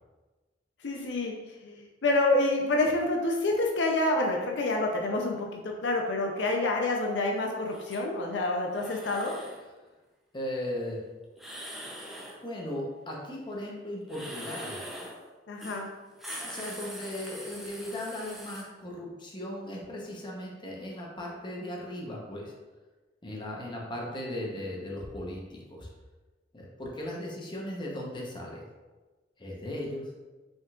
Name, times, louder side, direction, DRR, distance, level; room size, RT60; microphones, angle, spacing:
voice 1, 0.8-1.3 1.6-9.4 15.5-15.9, left 2 dB, 70° left, 0 dB, 0.5 m, -28 dB
sound 1, 7.7-8.0 8.7-9.6 11.4-12.4 14.0-15.2 15.6-15.8 16.1-18.6, equal, ahead, 0.6 m, -42 dB
voice 2, 10.3-11.0 12.4-14.8 16.4-22.5 23.2-25.9 26.5-28.6 29.4-30.1, left 1 dB, 25° left, -3 dB, 0.8 m, -37 dB
5.2 x 3.6 x 2.4 m, 1.2 s
head